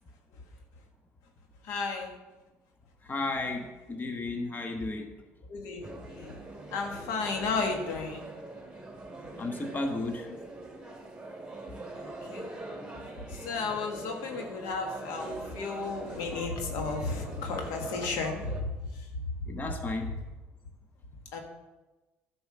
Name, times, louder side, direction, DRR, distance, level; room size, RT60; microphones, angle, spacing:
voice 1, 1.6-2.2 5.5-6.4 6.7-8.3 11.9-12.5 13.3-19.3 21.3-21.4, left 4 dB, 75° left, 3 dB, 1.6 m, -34 dB
voice 2, 3.0-5.1 9.4-10.3 19.5-20.1, left 2 dB, 30° left, 4 dB, 1.2 m, -33 dB
sound 1, 5.8-18.6, right 2 dB, 15° right, 2.3 m, -43 dB
10.5 x 4.7 x 6.7 m, 1.1 s
supercardioid pair, 80°, 6 cm